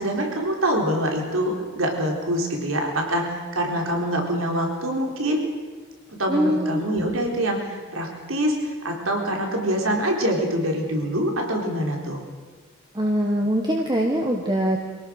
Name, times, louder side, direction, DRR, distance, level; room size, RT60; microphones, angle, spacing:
voice 1, 0.0-5.4 6.1-12.2, right 1 dB, 80° right, 1 dB, 4.0 m, -25 dB
voice 2, 6.3-6.8 12.9-14.8, equal, 20° right, 1 dB, 1.4 m, -22 dB
25.0 x 17.5 x 6.4 m, 1.5 s
head